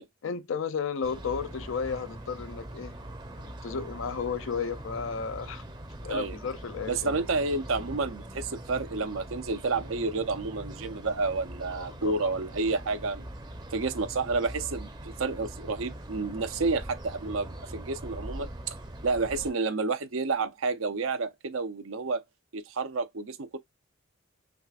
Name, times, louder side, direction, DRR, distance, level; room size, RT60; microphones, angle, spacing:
voice 1, 0.2-2.9 3.3-5.6 6.0-7.3 11.7-12.3, left 5 dB, 70° left, 0.5 m, -33 dB
sound 1, 1.0-19.5, right 1 dB, 20° right, 0.6 m, -42 dB
voice 2, 6.9-13.2 13.7-18.7 19.0-22.2 22.5-23.6, right 3 dB, 80° right, 0.7 m, -30 dB
6.0 x 2.5 x 2.4 m
head